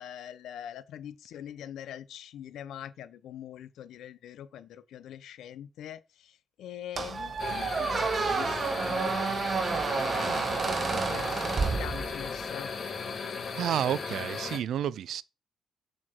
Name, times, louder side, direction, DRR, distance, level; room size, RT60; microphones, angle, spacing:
voice 1, 0.0-9.1 9.9-12.7, left 10 dB, 75° left, 0.8 m, -43 dB
Squeak, 7.0-12.5, right 5 dB, 40° right, 0.8 m, -30 dB
sound 1, 7.4-14.6, left 5 dB, 50° left, 1.7 m, -36 dB
voice 2, 13.5-15.2, right 10 dB, 70° right, 0.4 m, -30 dB
8.5 x 4.4 x 4.5 m
cardioid pair, 90°, 0 cm